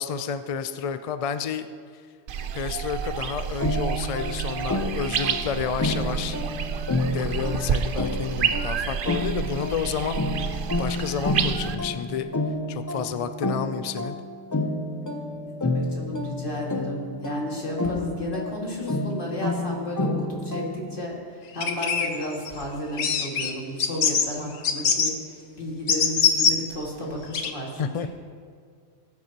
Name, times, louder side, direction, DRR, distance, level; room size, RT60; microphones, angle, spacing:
voice 1, 0.0-1.7 2.5-6.4 7.1-10.4 10.8-12.3 12.7-14.2 27.8-28.1, left 7 dB, 65° left, 10 dB, 0.3 m, -30 dB
sound 1, 2.3-11.7, right 7 dB, 60° right, 0.7 m, -29 dB
sound 2, 3.6-21.0, left 2 dB, 20° left, 0.6 m, -30 dB
voice 2, 15.2-28.1, left 1 dB, 50° left, -3 dB, 2.3 m, -33 dB
sound 3, 21.6-22.5 23.0-23.5 23.8-24.3 24.6-25.1 25.9-26.6 27.3-27.5, left 6 dB, 85° left, 1.2 m, -22 dB
18.5 x 9.4 x 2.9 m, 2.1 s
omnidirectional pair, 1.2 m